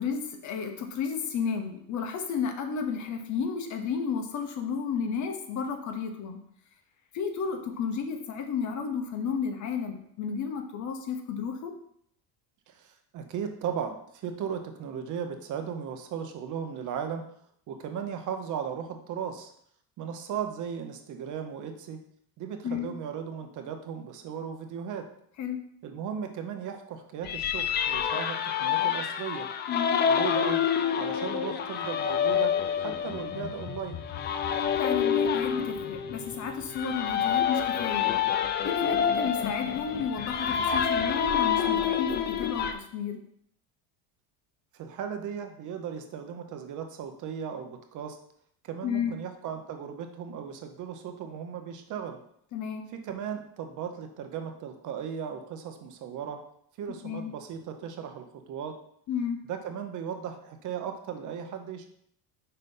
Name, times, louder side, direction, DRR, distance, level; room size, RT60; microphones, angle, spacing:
voice 1, 0.0-6.4 7.1-11.7 22.6-22.9 25.4-25.6 29.7-30.0 34.8-38.1 38.6-43.2 48.8-49.1 52.5-52.8 57.0-57.3 59.1-59.4, left 6 dB, 40° left, 5 dB, 1.0 m, -32 dB
voice 2, 12.7-17.3 17.7-19.5 20.0-22.0 22.4-25.1 25.8-29.5 30.1-30.6 31.0-34.0 38.9-39.2 44.7-48.2 48.6-52.2 52.9-56.4 56.8-58.8 59.5-61.8, right 7 dB, 45° right, 6 dB, 0.9 m, -36 dB
sound 1, 27.2-42.7, left 8 dB, 25° left, 0.3 m, -28 dB
5.5 x 4.1 x 5.3 m, 0.68 s
cardioid pair, 135°, 43 cm